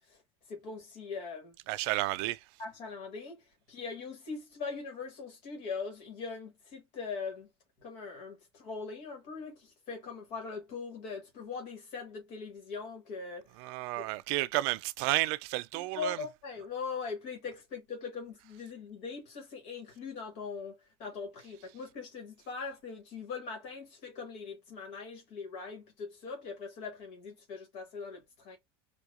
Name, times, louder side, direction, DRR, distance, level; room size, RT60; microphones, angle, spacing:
voice 1, 0.5-1.5 2.6-7.5 7.8-13.7 14.0-14.1 15.7-28.6, left 5 dB, 65° left, 1.6 m, -41 dB
voice 2, 1.7-2.4 13.6-16.2, right 19 dB, 70° right, 0.4 m, -31 dB
4.6 x 2.4 x 2.5 m
supercardioid pair, 105°, 14 cm